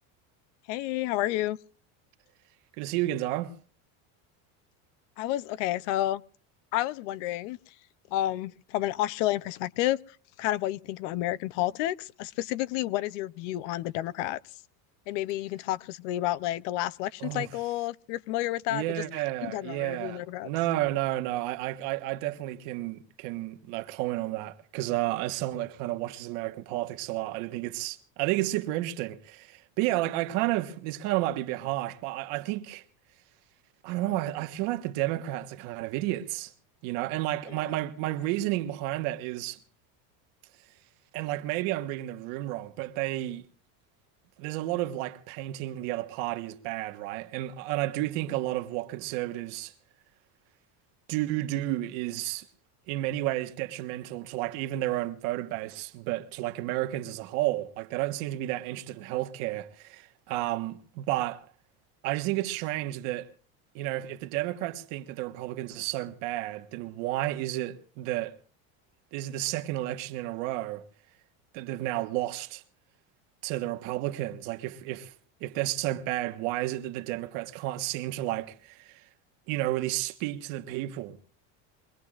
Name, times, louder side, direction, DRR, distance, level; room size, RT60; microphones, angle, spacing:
voice 1, 0.7-1.6 5.2-6.2 6.7-7.7 8.1-14.5 15.1-19.0 19.4-20.5 37.5-37.7, left 15 dB, 60° left, 0.6 m, -30 dB
voice 2, 2.8-3.5 17.2-17.5 18.7-32.8 33.8-36.5 36.8-39.6 41.1-43.4 44.4-49.7 51.1-52.4 52.9-61.4 62.0-63.3 63.7-68.4 69.1-70.9 71.5-72.6 73.4-75.1 75.4-79.0 79.5-81.3, right 16 dB, 55° right, 1.3 m, -31 dB
23.5 x 20.0 x 2.4 m
cardioid pair, 175°, 40 cm